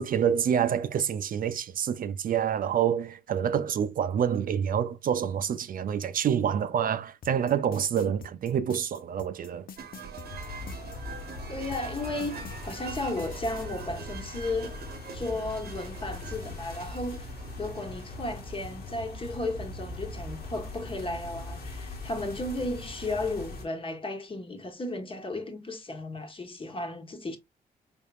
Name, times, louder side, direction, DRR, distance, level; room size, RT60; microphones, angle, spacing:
voice 1, 0.0-9.6, right 8 dB, 60° right, 0.4 m, -27 dB
sound 1, 7.2-11.0 11.7-13.7, left 6 dB, 60° left, 0.7 m, -45 dB
sound 2, 9.8-18.3, right 6 dB, 75° right, 1.0 m, -44 dB
sound 3, 10.2-23.7, left 2 dB, 80° left, 1.4 m, -40 dB
voice 2, 11.5-14.8 15.1-17.3 17.6-27.4, left 2 dB, 35° left, 1.2 m, -34 dB
4.1 x 3.5 x 2.3 m
cardioid pair, 70°, 16 cm